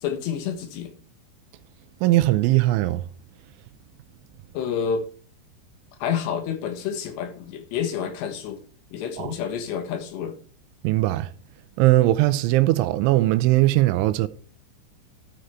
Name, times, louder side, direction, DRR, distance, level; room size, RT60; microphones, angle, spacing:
voice 1, 0.0-0.9 4.6-5.0 6.0-8.6 8.9-10.4, left 7 dB, 75° left, 3.4 m, -29 dB
voice 2, 2.0-3.1 9.2-9.3 10.8-11.3 11.8-14.3, right 16 dB, 85° right, 3.1 m, -20 dB
12.5 x 6.7 x 4.4 m
omnidirectional pair, 5.4 m